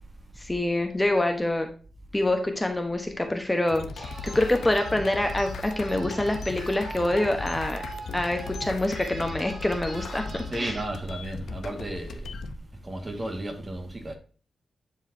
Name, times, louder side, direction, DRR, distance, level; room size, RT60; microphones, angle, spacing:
voice 1, 0.4-1.7 2.1-7.8 8.1-10.8, left 1 dB, 15° left, 1.2 m, -26 dB
sound 1, 3.7-12.6, left 4 dB, 90° left, 0.8 m, -38 dB
sound 2, 4.0-10.8, right 2 dB, 50° right, 3.6 m, -43 dB
voice 2, 10.5-12.4 12.8-14.2, right 1 dB, 30° right, 1.9 m, -34 dB
10.5 x 4.8 x 2.8 m
cardioid pair, 95°, 0 cm